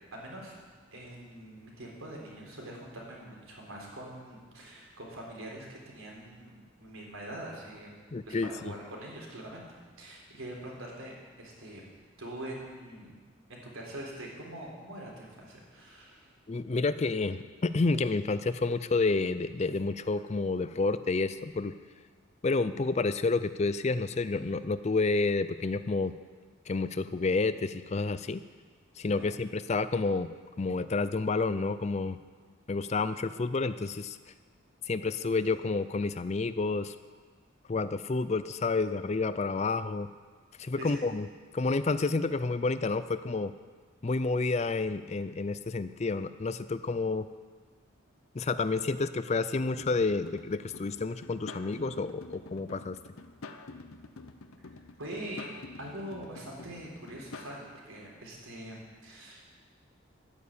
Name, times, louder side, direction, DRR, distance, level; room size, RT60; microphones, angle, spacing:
voice 1, 0.1-0.5 0.9-7.9 8.3-9.6 10.0-11.8 12.2-13.2 13.5-16.3 29.2-29.3 40.8-41.0 55.0-55.5 55.8-59.6, right 1 dB, 80° right, -2 dB, 3.8 m, -43 dB
voice 2, 8.1-8.7 16.5-21.7 22.4-26.1 26.7-28.4 29.0-30.3 30.6-32.2 32.7-34.2 34.9-36.9 37.7-40.1 40.6-41.3 41.5-43.5 44.0-47.3 48.3-53.0, left 3 dB, 30° left, 13 dB, 0.4 m, -29 dB
sound 1, 49.8-57.6, left 3 dB, 85° left, 0.8 m, -48 dB
12.0 x 9.4 x 8.6 m, 1.5 s
head